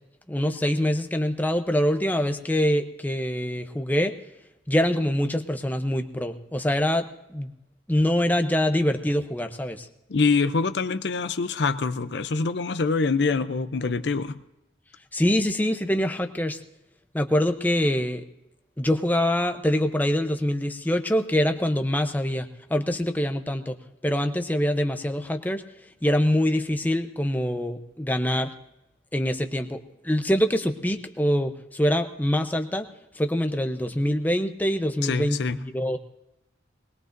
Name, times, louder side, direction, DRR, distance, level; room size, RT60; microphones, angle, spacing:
voice 1, 0.3-4.1 4.7-7.5 7.9-9.9 15.1-16.6 17.1-18.2 18.8-23.8 24.0-25.6 26.0-28.5 29.1-32.9 33.2-36.0, equal, 10° left, 7 dB, 0.7 m, -24 dB
voice 2, 10.1-14.4 35.0-35.6, left 4 dB, 60° left, 12 dB, 0.6 m, -25 dB
21.0 x 20.5 x 2.6 m, 0.90 s
head